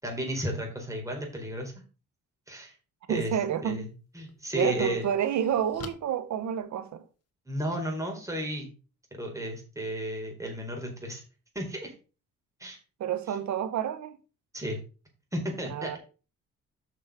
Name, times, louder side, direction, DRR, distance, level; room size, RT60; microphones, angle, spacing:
voice 1, 0.0-1.7 2.5-2.7 3.1-3.4 3.6-3.9 4.1-5.1 7.5-8.7 9.2-11.2 11.5-11.9 12.6-12.8 14.5-14.8 15.3-15.9, equal, 10° right, 4.5 m, -33 dB
voice 2, 3.1-3.9 4.5-7.0 13.0-14.2 15.7-16.0, right 9 dB, 70° right, 1.3 m, -29 dB
sound 1, 3.6-3.7 4.3-7.3, left 5 dB, 55° left, 1.6 m, -48 dB
8.0 x 6.2 x 5.1 m
cardioid pair, 90°, 30 cm